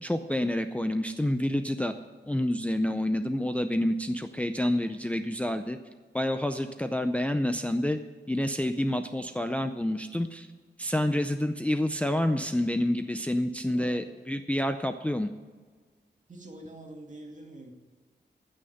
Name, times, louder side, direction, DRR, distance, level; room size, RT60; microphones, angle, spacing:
voice 1, 0.0-1.9 2.2-5.8 6.1-8.0 8.3-10.5 10.8-15.3, left 1 dB, 5° left, 7 dB, 0.5 m, -28 dB
voice 2, 13.7-14.1 16.3-17.7, right 1 dB, 45° right, 2 dB, 2.2 m, -45 dB
15.0 x 6.4 x 7.9 m, 1.5 s
wide cardioid pair, 130°, 18 cm